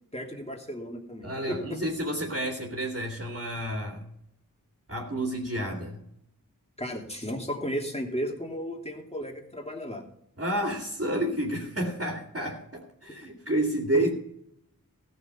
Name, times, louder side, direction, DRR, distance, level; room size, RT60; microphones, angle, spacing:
voice 1, 0.1-1.8 6.8-10.0 13.9-14.0, equal, 20° left, 1 dB, 2.9 m, -34 dB
voice 2, 1.2-4.1 4.9-6.0 10.4-14.1, right 1 dB, 40° right, -1 dB, 2.6 m, -30 dB
15.5 x 6.8 x 5.5 m, 0.74 s
wide cardioid pair, 40°, 35 cm